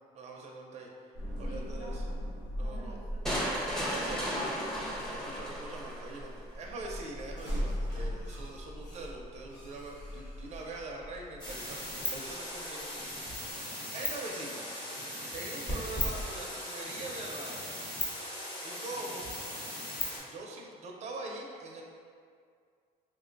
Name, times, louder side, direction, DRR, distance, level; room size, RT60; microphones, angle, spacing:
voice 1, 0.1-0.9 1.4-2.1 2.6-3.0 3.9-4.3 4.7-13.5 13.9-14.7 15.3-17.8 18.6-19.3 20.2-21.8, right 2 dB, 40° right, -1 dB, 0.5 m, -43 dB
sound 1, 1.1-13.6, equal, 90° left, 1.3 m, -40 dB
voice 2, 1.4-2.2 2.6-4.1, left 1 dB, 55° left, -5 dB, 0.8 m, -49 dB
sound 2, 3.3-6.3, equal, 5° left, 0.6 m, -34 dB
sound 3, 11.4-20.2, left 1 dB, 25° left, 0.9 m, -38 dB
3.1 x 2.2 x 3.8 m, 2.2 s
cardioid pair, 110°, 17 cm